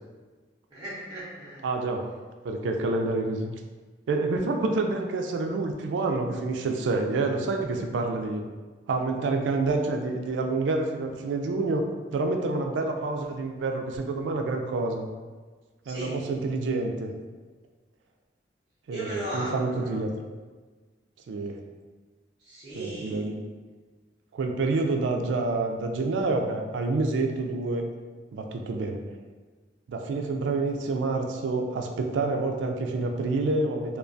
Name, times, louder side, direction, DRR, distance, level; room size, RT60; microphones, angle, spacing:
voice 1, 0.7-1.7 15.8-16.2 18.9-20.0 22.4-23.3, right 1 dB, 25° right, -11 dB, 0.7 m, -37 dB
voice 2, 1.6-2.1 2.4-3.5 4.1-8.4 8.9-11.9 12.1-15.1 15.9-17.1 18.9-20.1 21.3-21.6 22.8-23.4 24.3-27.9 28.3-29.0 29.9-34.0, right 3 dB, 85° right, 4 dB, 0.3 m, -28 dB
2.3 x 2.2 x 2.5 m, 1.4 s
head